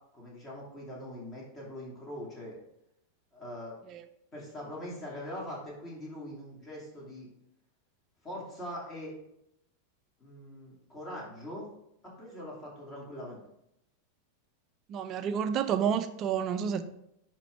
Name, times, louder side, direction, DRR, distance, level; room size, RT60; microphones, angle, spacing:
voice 1, 0.1-2.6 3.3-3.8 4.3-7.3 8.2-9.1 10.2-11.7 12.2-13.4, left 1 dB, 25° left, -4 dB, 2.7 m, -42 dB
voice 2, 14.9-16.8, right 8 dB, 35° right, 10 dB, 0.5 m, -30 dB
9.9 x 3.7 x 3.3 m, 0.79 s
figure-of-eight pair, 90°, 0 cm